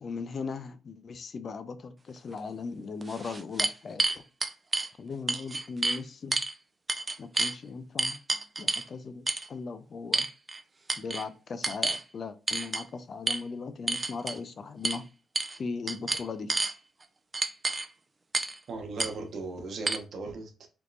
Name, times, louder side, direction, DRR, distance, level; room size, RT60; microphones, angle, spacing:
voice 1, 0.0-4.2 5.0-6.4 7.2-8.2 8.6-10.3 11.0-15.0 15.5-16.5, left 4 dB, 50° left, 0.4 m, -38 dB
sound 1, 2.4-2.5 3.0-4.9 5.3-6.0 6.3-6.5 6.9-7.5 8.0-8.9 9.3-9.5 10.1-10.6 10.9-11.2 11.6-12.0 12.5-12.8 13.3-13.4 13.9-14.4 14.8-15.0 15.3-15.6 15.9-16.7 17.3-17.9 18.3-18.6 19.0-19.1 19.9-20.0, right 3 dB, 30° right, 0.4 m, -29 dB
voice 2, 18.7-20.7, right 3 dB, 65° right, 0.9 m, -37 dB
3.5 x 3.0 x 2.5 m
cardioid pair, 75°, 0 cm